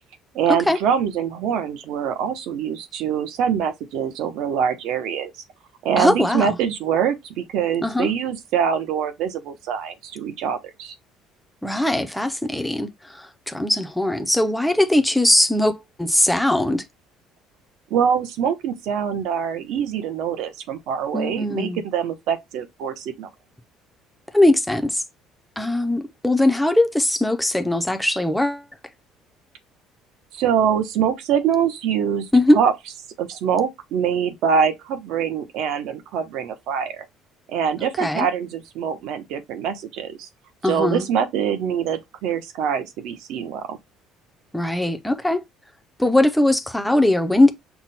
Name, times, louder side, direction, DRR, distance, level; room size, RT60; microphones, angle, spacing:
voice 1, 0.3-5.3 5.8-10.9 17.9-23.3 30.3-32.3 32.5-32.7 33.2-37.1 37.5-40.3 40.6-43.8, right 7 dB, 60° right, 0.8 m, -24 dB
voice 2, 6.0-6.6 7.8-8.1 11.6-16.8 21.1-21.8 24.3-25.0 25.6-28.6 32.3-32.6 38.0-38.3 40.6-41.1 44.5-45.4 46.0-47.5, left 1 dB, ahead, 0.5 m, -20 dB
5.8 x 2.2 x 4.1 m
cardioid pair, 180°, 0 cm